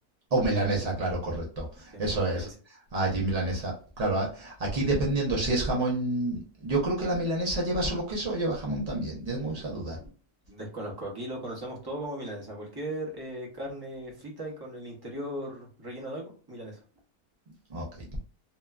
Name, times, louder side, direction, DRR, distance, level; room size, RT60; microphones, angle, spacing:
voice 1, 0.3-2.5 2.9-10.0 17.7-18.1, right 2 dB, 80° right, -3 dB, 0.3 m, -28 dB
voice 2, 1.9-2.5 10.0-10.1 10.5-16.8, right 1 dB, 20° right, -2 dB, 0.6 m, -38 dB
2.9 x 2.2 x 2.2 m, 0.39 s
omnidirectional pair, 1.6 m